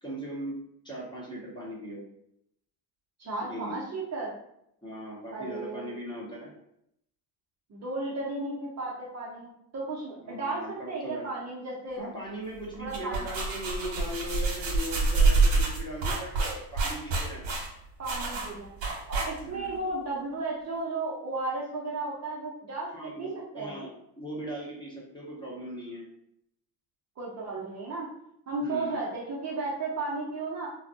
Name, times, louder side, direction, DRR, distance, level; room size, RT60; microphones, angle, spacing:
voice 1, 0.0-0.6 0.8-2.0 3.4-3.8 4.8-6.5 10.2-11.3 12.0-17.6 19.4-19.8 22.9-26.1 28.6-29.0, equal, 10° left, -5 dB, 1.1 m, -39 dB
voice 2, 3.2-4.3 5.3-5.9 7.7-12.0 12.8-13.3 18.0-18.7 19.1-23.3 23.5-23.7 27.2-28.1 28.5-30.7, right 3 dB, 35° right, -4 dB, 0.8 m, -34 dB
sound 1, 12.7-19.7, right 3 dB, 70° right, 1.1 m, -27 dB
3.3 x 2.2 x 2.7 m, 0.75 s
supercardioid pair, 85°, 47 cm